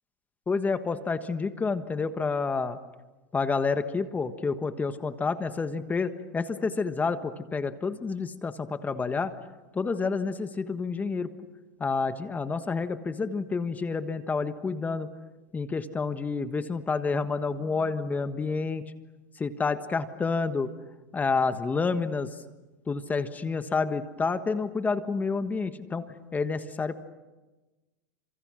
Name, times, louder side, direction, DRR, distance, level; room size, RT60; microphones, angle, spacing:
voice 1, 0.5-2.8 3.3-9.3 9.7-11.3 11.8-15.1 15.5-18.8 19.4-20.7 21.1-22.3 22.9-26.1 26.3-27.0, left 4 dB, 15° left, 10 dB, 1.4 m, -29 dB
30.0 x 27.0 x 6.4 m, 1.2 s
hypercardioid pair, 115°, 10 cm